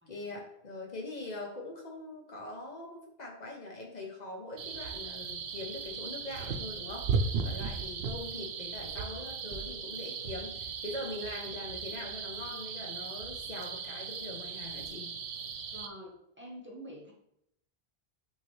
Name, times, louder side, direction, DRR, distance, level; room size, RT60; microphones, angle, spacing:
voice 1, 0.1-15.1, left 2 dB, 45° left, 0 dB, 0.8 m, -42 dB
sound 1, 4.6-15.9, right 5 dB, 85° right, 0.8 m, -37 dB
voice 2, 15.7-17.1, equal, 10° right, -3 dB, 0.8 m, -47 dB
5.8 x 2.8 x 3.1 m, 0.75 s
omnidirectional pair, 1.0 m